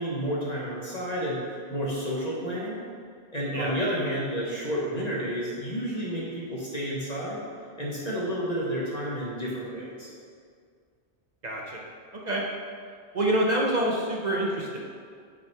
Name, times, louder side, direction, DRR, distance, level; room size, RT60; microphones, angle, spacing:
voice 1, 0.0-2.8 3.3-7.4 7.8-10.1, equal, 35° left, -5 dB, 1.2 m, -31 dB
voice 2, 11.4-11.8 12.1-12.4 13.1-14.8, right 1 dB, 45° right, -2 dB, 0.8 m, -26 dB
6.1 x 5.1 x 4.5 m, 2.1 s
omnidirectional pair, 1.2 m